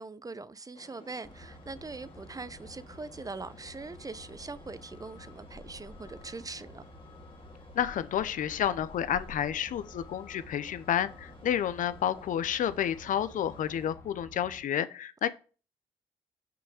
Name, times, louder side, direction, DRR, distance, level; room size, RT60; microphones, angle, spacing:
voice 1, 0.0-6.8, right 3 dB, 25° right, 0.7 m, -42 dB
sound 1, 0.7-13.9, left 3 dB, 35° left, 2.2 m, -56 dB
Truck, 1.2-14.6, left 1 dB, 20° left, 2.1 m, -51 dB
voice 2, 7.7-15.3, left 10 dB, 65° left, 0.7 m, -30 dB
6.2 x 5.6 x 4.9 m
hypercardioid pair, 50°, 15 cm